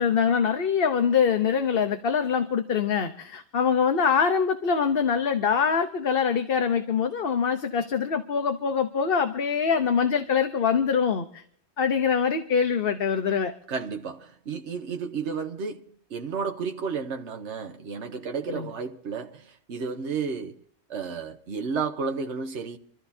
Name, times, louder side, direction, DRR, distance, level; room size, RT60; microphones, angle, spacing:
voice 1, 0.0-11.4 11.8-13.5 18.5-18.7, left 6 dB, 60° left, 1.1 m, -24 dB
voice 2, 13.7-15.8 16.1-20.6 20.9-22.8, right 5 dB, 80° right, 1.3 m, -32 dB
27.0 x 14.0 x 2.8 m
omnidirectional pair, 1.2 m